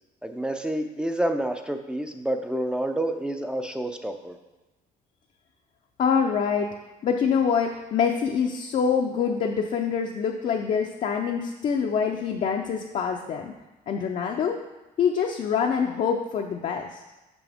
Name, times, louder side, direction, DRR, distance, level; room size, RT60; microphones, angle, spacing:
voice 1, 0.2-4.3, right 1 dB, 5° right, 6 dB, 0.5 m, -28 dB
voice 2, 6.0-6.7 7.0-13.5 13.9-14.6 15.0-17.0, left 6 dB, 45° left, 1 dB, 0.5 m, -25 dB
6.1 x 6.0 x 3.5 m, 1.1 s
cardioid pair, 110°, 17 cm